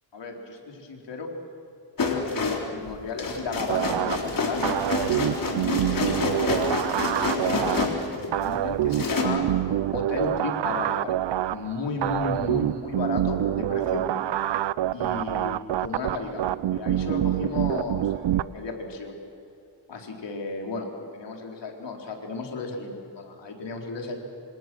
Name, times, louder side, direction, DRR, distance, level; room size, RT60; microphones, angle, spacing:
voice 1, 0.1-1.3 2.1-4.8 5.2-9.4 9.9-11.2 11.5-14.0 14.9-19.2 19.9-24.2, left 3 dB, 80° left, 2 dB, 4.1 m, -34 dB
sound 1, 2.0-8.5 8.9-9.2, left 4 dB, 50° left, 3.7 m, -28 dB
sound 2, 3.7-18.4, right 12 dB, 75° right, 0.6 m, -26 dB
27.0 x 26.0 x 6.3 m, 2.7 s
wide cardioid pair, 105°, 43 cm